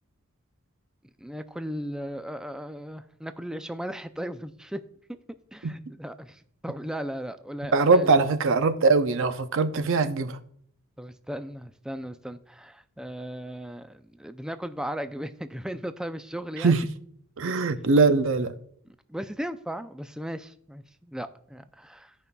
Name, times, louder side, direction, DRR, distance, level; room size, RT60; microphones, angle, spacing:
voice 1, 1.2-4.8 5.1-5.2 5.5-8.1 11.0-16.7 19.1-22.1, equal, 5° right, 0.3 m, -36 dB
voice 2, 7.7-10.4 16.6-16.8 17.4-18.5, right 4 dB, 60° right, 0.6 m, -21 dB
16.0 x 5.4 x 2.2 m
head